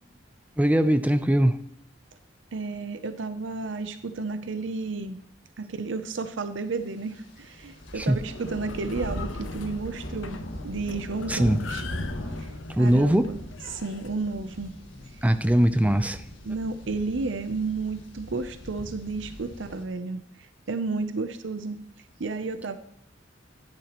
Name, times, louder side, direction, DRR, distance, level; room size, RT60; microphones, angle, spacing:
voice 1, 0.6-1.6 8.0-8.2 11.3-11.6 12.7-13.3 15.2-16.2, right 1 dB, 10° right, 10 dB, 0.5 m, -21 dB
voice 2, 2.5-5.2 5.6-11.8 12.4-12.5 12.8-13.4 13.7-14.7 16.4-21.8 22.2-22.8, right 3 dB, 70° right, 10 dB, 0.6 m, -32 dB
sound 1, 7.2-19.9, left 1 dB, 70° left, 1.8 m, -39 dB
sound 2, 7.9-14.1, left 4 dB, 85° left, 0.7 m, -41 dB
11.5 x 10.5 x 3.0 m, 0.73 s
head